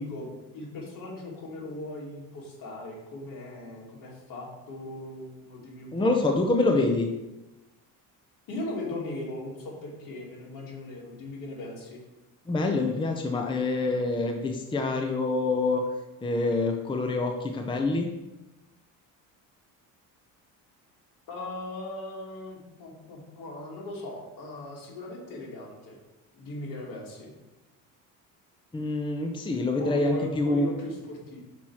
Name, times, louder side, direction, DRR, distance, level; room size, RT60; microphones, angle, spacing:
voice 1, 0.0-6.1 8.5-12.0 21.3-26.0 26.3-27.3 29.8-31.4, left 2 dB, 65° left, -2 dB, 2.6 m, -38 dB
voice 2, 5.9-7.1 12.5-15.8 16.2-18.1 28.7-30.7, left 2 dB, 15° left, 3 dB, 0.6 m, -26 dB
6.1 x 4.6 x 5.7 m, 1.0 s
cardioid pair, 125°, 36 cm